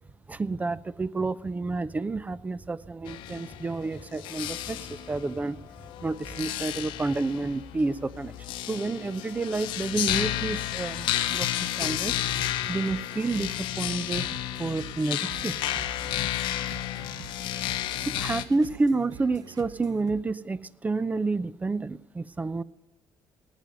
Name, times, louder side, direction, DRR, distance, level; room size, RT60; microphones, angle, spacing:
voice 1, 0.3-5.6 6.0-8.3 8.7-12.1 12.7-14.3 14.6-15.5 18.0-22.6, right 3 dB, 20° right, 17 dB, 0.6 m, -29 dB
sound 1, 3.1-18.4, left 13 dB, 80° left, 0.9 m, -32 dB
sound 2, 12.2-20.2, right 9 dB, 50° right, 0.8 m, -46 dB
17.5 x 9.5 x 5.2 m, 1.0 s
cardioid pair, 95°, 8 cm